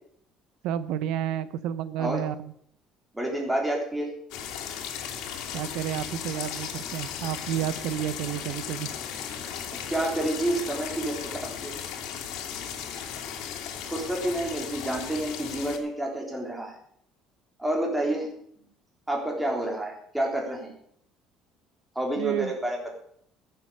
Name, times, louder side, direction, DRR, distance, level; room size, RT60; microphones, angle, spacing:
voice 1, 0.6-2.5 5.5-8.9 22.2-22.5, right 11 dB, 75° right, 15 dB, 0.7 m, -30 dB
voice 2, 3.1-4.1 9.9-11.2 11.4-11.7 13.8-16.8 17.6-18.3 19.1-20.7 21.9-22.9, right 1 dB, 5° right, 0 dB, 3.4 m, -29 dB
sound 1, 4.3-15.8, left 8 dB, 80° left, 2.6 m, -36 dB
14.0 x 8.1 x 6.7 m, 0.65 s
cardioid pair, 155°, 0 cm